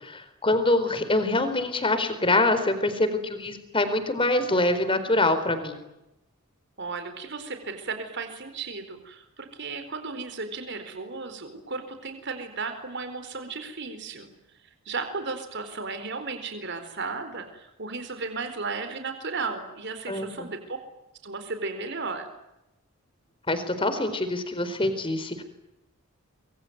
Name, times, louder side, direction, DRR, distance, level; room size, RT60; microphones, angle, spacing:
voice 1, 0.0-5.8 20.1-20.5 23.5-25.4, left 2 dB, 25° left, 10 dB, 4.3 m, -25 dB
voice 2, 0.6-1.1 6.8-14.3 14.9-20.8 21.2-22.3, right 4 dB, 50° right, 8 dB, 4.3 m, -35 dB
26.0 x 24.0 x 9.4 m, 0.90 s
head